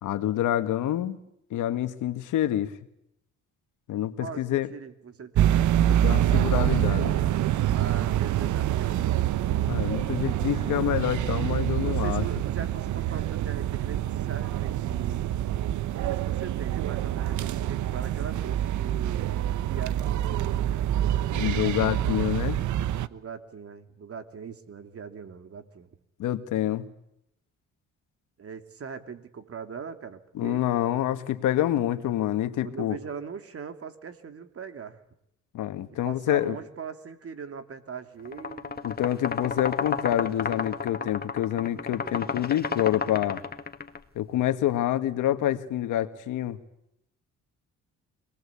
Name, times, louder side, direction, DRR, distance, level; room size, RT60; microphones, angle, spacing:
voice 1, 0.0-1.2 1.5-2.7 3.9-4.7 6.0-7.2 9.7-12.3 21.3-22.6 26.2-26.9 30.3-33.0 35.5-36.6 38.8-43.4 44.2-46.6, left 12 dB, 85° left, 9 dB, 1.8 m, -27 dB
voice 2, 4.2-5.8 7.7-9.3 11.8-15.4 15.9-20.4 20.7-22.0 23.1-26.0 28.4-30.7 32.6-35.0 36.0-38.9, right 6 dB, 50° right, 8 dB, 2.9 m, -41 dB
sound 1, 5.3-23.1, right 12 dB, 75° right, 1.0 m, -26 dB
sound 2, 38.2-44.0, left 5 dB, 30° left, 1.9 m, -32 dB
26.0 x 20.0 x 8.5 m, 0.80 s
cardioid pair, 90°, 30 cm